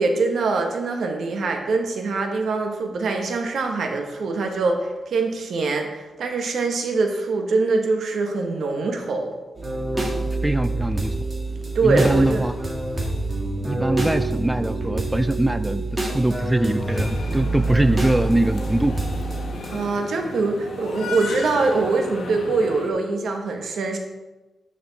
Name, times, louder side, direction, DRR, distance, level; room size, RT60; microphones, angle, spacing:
voice 1, 0.0-9.4 11.7-12.4 19.7-24.0, right 3 dB, 80° right, 4 dB, 1.3 m, -23 dB
sound 1, 9.6-19.8, right 2 dB, 25° right, 2.3 m, -26 dB
voice 2, 10.4-11.1 11.8-12.5 13.6-18.9, right 1 dB, 10° right, 11 dB, 0.4 m, -22 dB
sound 2, 16.8-22.9, left 3 dB, 75° left, 1.3 m, -35 dB
9.6 x 6.2 x 4.1 m, 1.1 s
cardioid pair, 85°, 0 cm